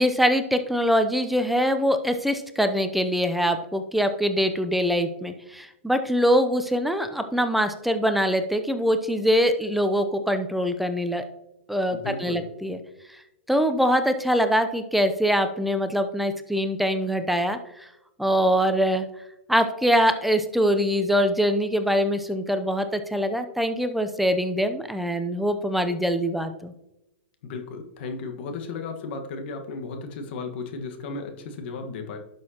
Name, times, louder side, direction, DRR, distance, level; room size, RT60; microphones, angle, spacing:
voice 1, 0.0-11.2 11.7-12.8 13.5-17.9 18.2-19.0 19.5-26.7, equal, ahead, 8 dB, 0.7 m, -23 dB
voice 2, 11.9-12.5 27.4-32.2, left 4 dB, 55° left, 4 dB, 1.5 m, -34 dB
11.0 x 6.3 x 2.9 m, 0.91 s
hypercardioid pair, 120°, 7 cm